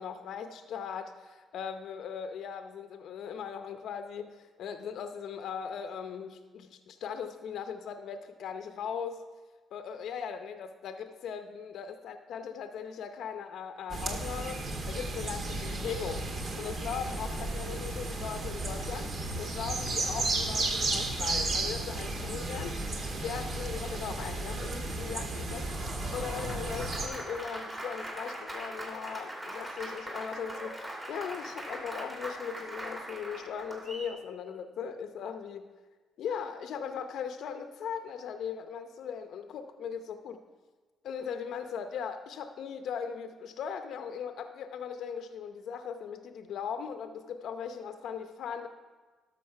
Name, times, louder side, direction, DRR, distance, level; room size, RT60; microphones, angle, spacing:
voice 1, 0.0-9.2 9.7-16.2 16.6-19.1 19.4-22.8 23.2-35.7 36.2-40.4 41.0-48.7, left 7 dB, 75° left, 8 dB, 0.7 m, -39 dB
sound 1, 13.9-27.1, right 2 dB, 50° right, 1.7 m, -34 dB
Applause, 25.4-34.1, right 1 dB, 20° right, 2.9 m, -41 dB
12.0 x 6.5 x 5.7 m, 1.3 s
cardioid pair, 90°, 0 cm